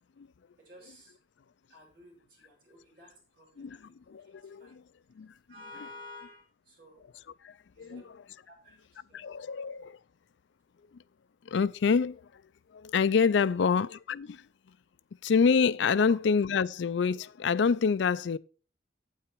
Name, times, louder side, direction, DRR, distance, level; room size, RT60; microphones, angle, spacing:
voice 1, 0.6-1.1 1.7-4.0 4.6-4.7 5.5-7.0 7.8-8.0 8.4-8.8 9.1-9.3 15.9-16.1, left 1 dB, 50° right, 5.8 m, -51 dB
voice 2, 3.6-4.8 5.2-5.3 5.8-5.9 7.1-8.2 9.1-10.0 11.5-12.4 12.7-14.4 15.2-18.4, left 5 dB, 75° left, 0.4 m, -27 dB
9.0 x 8.6 x 4.5 m
head